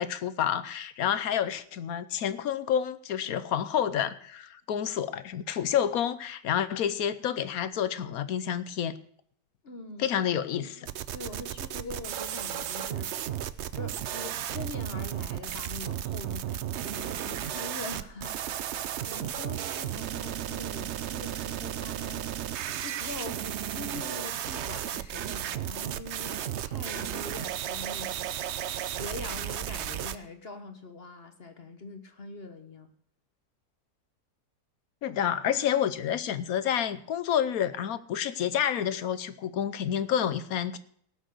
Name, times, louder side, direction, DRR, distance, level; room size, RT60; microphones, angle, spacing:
voice 1, 0.0-9.0 10.0-10.9 35.0-40.8, left 9 dB, 65° left, 14 dB, 1.1 m, -29 dB
voice 2, 9.6-10.2 10.6-10.7 11.1-13.1 13.7-18.8 19.0-22.3 22.8-28.3 28.8-32.9, left 3 dB, 40° left, 8 dB, 1.3 m, -43 dB
sound 1, 10.9-30.2, right 10 dB, 65° right, 0.7 m, -34 dB
17.5 x 6.3 x 6.4 m, 0.62 s
omnidirectional pair, 1.8 m